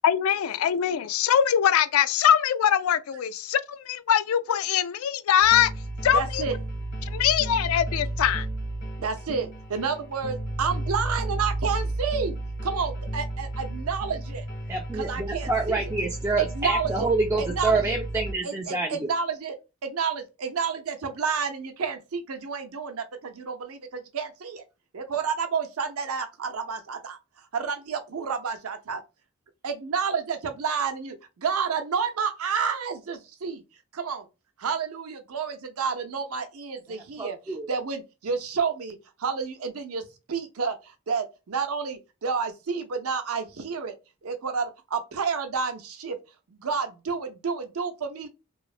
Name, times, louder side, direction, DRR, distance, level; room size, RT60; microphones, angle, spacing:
voice 1, 0.0-5.7 6.0-6.5 7.0-8.5, left 9 dB, 70° left, 0.3 m, -22 dB
sound 1, 5.4-18.3, right 1 dB, 55° left, 1.0 m, -33 dB
voice 2, 6.1-6.6 9.0-12.4 12.6-14.4 14.9-15.8 16.4-17.1 17.5-17.8 18.4-19.5 19.8-24.6 24.9-27.2 27.5-29.0 29.6-33.6 33.9-34.2 34.6-43.9 44.2-46.2 46.5-48.3, right 5 dB, 75° right, 0.6 m, -30 dB
voice 3, 14.7-19.1 37.2-37.7, right 3 dB, 15° right, 0.3 m, -27 dB
3.0 x 2.1 x 2.3 m
head